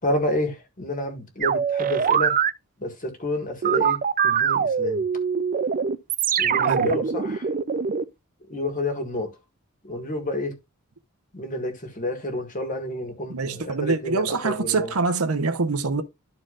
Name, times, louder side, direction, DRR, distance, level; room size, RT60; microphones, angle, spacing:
voice 1, 0.0-2.4 2.8-5.0 6.4-7.5 8.5-9.3 9.8-10.6 11.3-14.9, left 1 dB, 40° left, 1.7 m, -29 dB
sound 1, 1.4-2.5 3.6-8.0, right 7 dB, 40° right, 0.4 m, -23 dB
voice 2, 6.6-7.0 13.3-16.0, right 4 dB, 75° right, 0.9 m, -25 dB
13.0 x 4.4 x 2.5 m
head